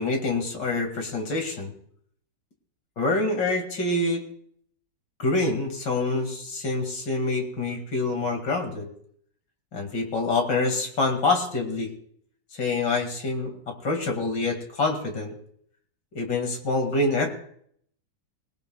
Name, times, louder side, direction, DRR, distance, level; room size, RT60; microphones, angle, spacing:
voice 1, 0.0-1.7 3.0-4.2 5.2-8.9 9.7-11.9 12.5-15.3 16.1-17.3, left 3 dB, 75° left, 5 dB, 3.0 m, -26 dB
21.0 x 19.0 x 2.4 m, 0.63 s
omnidirectional pair, 1.9 m